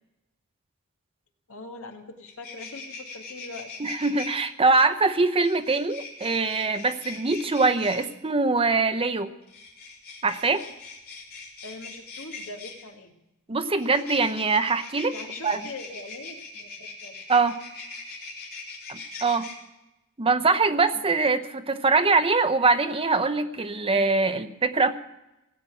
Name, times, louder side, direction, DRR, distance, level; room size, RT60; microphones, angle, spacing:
voice 1, 1.5-3.7 11.6-13.2 15.1-17.3, left 2 dB, 65° left, 3 dB, 1.9 m, -42 dB
sound 1, 1.9-2.0 2.2-4.3 5.4-8.0 9.4-12.8 13.8-19.5, left 4 dB, 45° left, 3.4 m, -41 dB
voice 2, 3.8-9.3 10.2-10.6 13.5-15.1 15.4-15.6 17.3-17.6 18.9-19.5 20.2-25.0, right 3 dB, 25° right, 9 dB, 0.8 m, -23 dB
17.0 x 8.2 x 8.8 m, 0.93 s
head